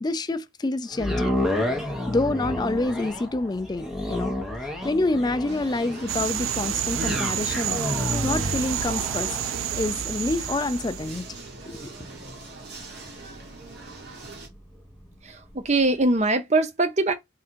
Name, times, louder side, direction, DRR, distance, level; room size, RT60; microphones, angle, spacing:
voice 1, 0.0-1.3 2.1-4.3 4.8-7.8 8.2-9.4 9.7-11.4 11.7-11.9, left 2 dB, 20° left, 0.3 m, -27 dB
sound 1, 0.9-15.1 15.6-15.7, left 1 dB, ahead, 1.0 m, -32 dB
sound 2, 5.5-14.5, right 3 dB, 55° right, 1.5 m, -42 dB
sound 3, 6.1-11.4, right 10 dB, 85° right, 0.4 m, -29 dB
voice 2, 15.2-17.1, right 2 dB, 35° right, 0.7 m, -22 dB
3.7 x 2.6 x 4.4 m
head